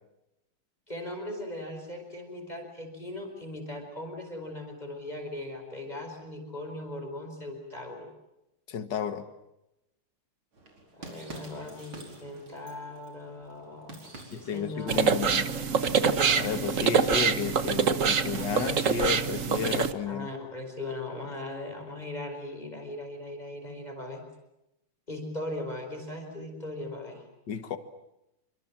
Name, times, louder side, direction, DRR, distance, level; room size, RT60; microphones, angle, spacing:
voice 1, 0.9-8.1 10.9-15.3 20.0-24.2 25.1-27.2, left 1 dB, 20° left, 4 dB, 5.2 m, -39 dB
voice 2, 8.7-9.3 14.3-15.4 16.4-20.3 27.5-27.8, left 7 dB, 55° left, 9 dB, 2.3 m, -32 dB
sound 1, 10.5-19.2, right 2 dB, 70° right, 5.6 m, -48 dB
sound 2, 14.9-19.9, right 6 dB, 40° right, 1.4 m, -25 dB
28.5 x 26.0 x 7.5 m, 0.90 s
omnidirectional pair, 2.4 m